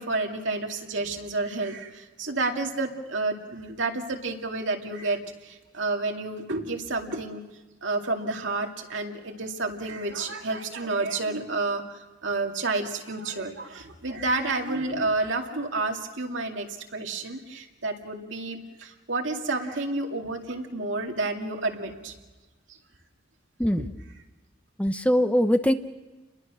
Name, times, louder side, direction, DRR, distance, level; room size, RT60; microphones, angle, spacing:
voice 1, 0.0-7.4 7.8-22.1 23.8-23.9, right 3 dB, 75° right, 2 dB, 2.4 m, -30 dB
voice 2, 24.8-25.7, equal, 5° left, 9 dB, 0.7 m, -22 dB
30.0 x 22.0 x 6.3 m, 1.2 s
head